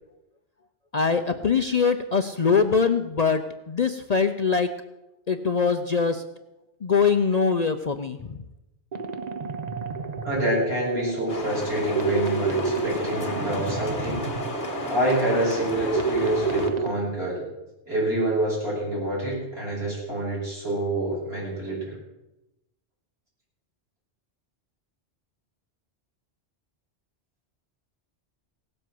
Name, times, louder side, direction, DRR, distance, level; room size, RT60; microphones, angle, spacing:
voice 1, 0.9-4.7 5.3-6.2 6.8-8.4, left 5 dB, 45° left, 8 dB, 0.6 m, -23 dB
sound 1, 8.9-16.9, right 5 dB, 40° right, 1.0 m, -30 dB
voice 2, 10.2-14.3 14.9-17.4 17.9-21.9, right 1 dB, 65° right, -5 dB, 6.9 m, -27 dB
sound 2, 11.3-16.7, left 2 dB, 70° left, 2.6 m, -33 dB
17.5 x 7.8 x 7.6 m, 0.95 s
omnidirectional pair, 1.2 m